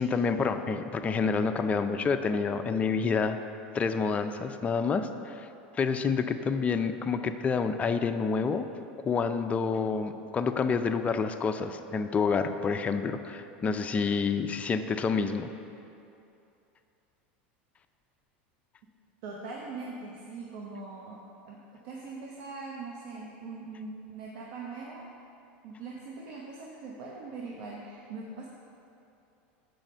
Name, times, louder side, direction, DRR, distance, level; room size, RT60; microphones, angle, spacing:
voice 1, 0.0-3.4 3.7-5.5 5.7-8.7 9.0-15.5, left 5 dB, 25° left, 8 dB, 0.4 m, -28 dB
voice 2, 19.2-25.0 25.6-28.5, right 3 dB, 70° right, -2 dB, 0.9 m, -41 dB
7.6 x 4.8 x 5.4 m, 2.7 s
supercardioid pair, 115°, 6 cm